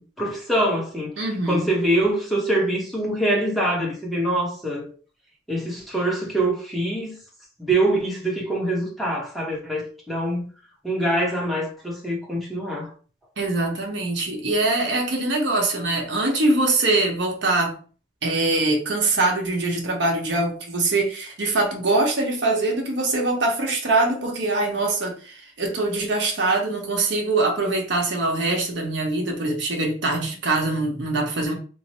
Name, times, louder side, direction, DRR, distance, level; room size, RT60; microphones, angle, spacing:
voice 1, 0.0-1.1 1.5-4.9 5.5-7.2 7.6-10.5 10.8-12.9, right 1 dB, ahead, 0.8 m, -24 dB
voice 2, 1.2-1.7 13.4-17.8 18.2-31.5, right 2 dB, 70° right, 0.9 m, -23 dB
3.1 x 2.0 x 4.1 m
head